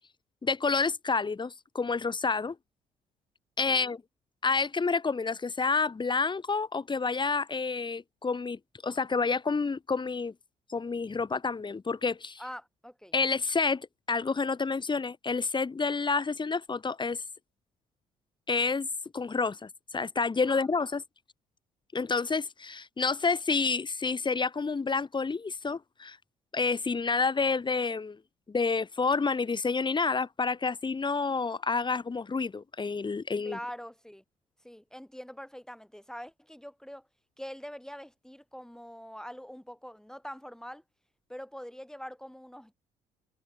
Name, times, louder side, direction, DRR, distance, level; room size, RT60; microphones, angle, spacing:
voice 1, 0.4-2.5 3.6-4.0 4.4-10.3 10.7-12.4 13.1-17.2 18.5-18.9 19.1-21.0 21.9-26.2 26.5-28.2 28.5-33.6, left 4 dB, 30° left, 1.7 m, -29 dB
voice 2, 12.4-13.1 20.5-20.7 33.4-34.2 34.6-37.1 37.4-40.8 41.3-42.7, equal, 5° left, 2.7 m, -44 dB
hypercardioid pair, 55°, 16 cm